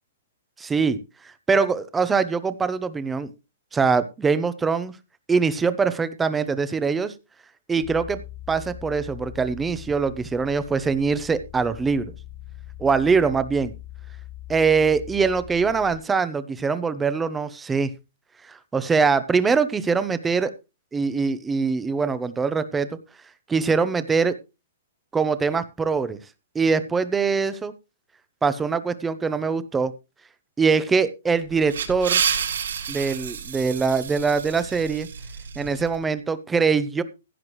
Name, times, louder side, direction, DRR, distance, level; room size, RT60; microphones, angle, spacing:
voice 1, 0.6-1.0 1.5-3.3 3.7-5.0 5.3-7.1 7.7-8.2 8.5-12.1 12.8-13.7 14.5-17.9 18.5-20.5 20.9-22.9 23.5-24.3 25.1-26.2 26.5-27.7 28.4-29.9 30.6-32.2 32.9-35.1 35.6-37.0, right 5 dB, 10° right, 13 dB, 0.7 m, -23 dB
sound 1, 7.8-16.0, left 13 dB, 80° left, 6.4 m, -41 dB
sound 2, 31.4-35.9, right 7 dB, 80° right, 4.4 m, -29 dB
16.0 x 9.4 x 3.1 m, 0.28 s
hypercardioid pair, 170°, 0 cm